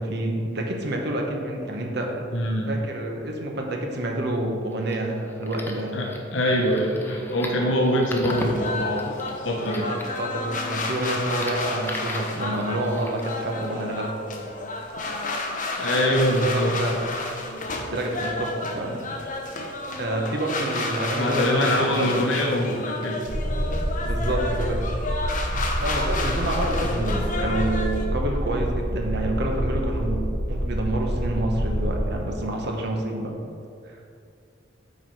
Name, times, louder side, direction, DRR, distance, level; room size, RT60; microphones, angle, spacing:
voice 1, 0.0-2.3 2.7-6.0 9.8-14.1 15.9-16.3 16.5-17.3 17.9-19.0 19.9-22.1 24.0-24.8 25.8-33.3 33.8-34.0, right 1 dB, 60° right, 1 dB, 1.0 m, -28 dB
voice 2, 2.3-2.7 5.9-9.9 15.8-16.7 21.0-23.2, equal, 85° left, -1 dB, 1.1 m, -24 dB
sound 1, 4.7-13.2, left 1 dB, 10° left, 0.7 m, -39 dB
sound 2, 8.3-28.0, left 2 dB, 45° left, 0.9 m, -31 dB
sound 3, 23.3-32.0, equal, 90° right, 1.2 m, -27 dB
8.1 x 4.8 x 4.7 m, 2.5 s
head